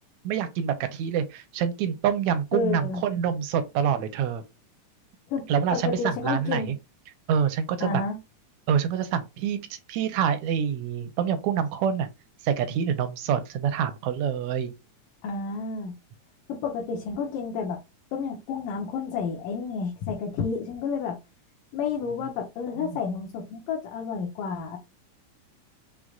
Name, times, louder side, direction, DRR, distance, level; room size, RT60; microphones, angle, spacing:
voice 1, 0.2-4.4 5.5-6.8 7.3-8.0 8.7-12.1 12.4-14.7 22.8-23.0, right 8 dB, 80° right, 1.8 m, -26 dB
voice 2, 2.5-3.0 5.3-5.4 5.7-6.7 7.8-8.2 15.2-15.9 16.5-17.8 18.1-21.2 21.7-24.8, left 5 dB, 85° left, 2.6 m, -30 dB
6.5 x 3.3 x 2.4 m
omnidirectional pair, 3.6 m